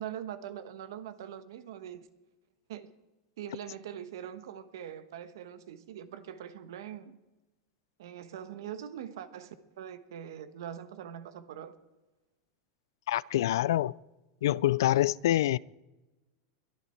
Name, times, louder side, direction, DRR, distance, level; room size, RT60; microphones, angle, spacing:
voice 1, 0.0-2.1 2.7-2.9 3.4-7.2 8.0-11.7, right 9 dB, 80° right, 1.2 m, -42 dB
voice 2, 13.1-13.9 14.4-15.6, left 13 dB, 85° left, 0.4 m, -26 dB
22.5 x 9.8 x 4.5 m
supercardioid pair, 135°, 2 cm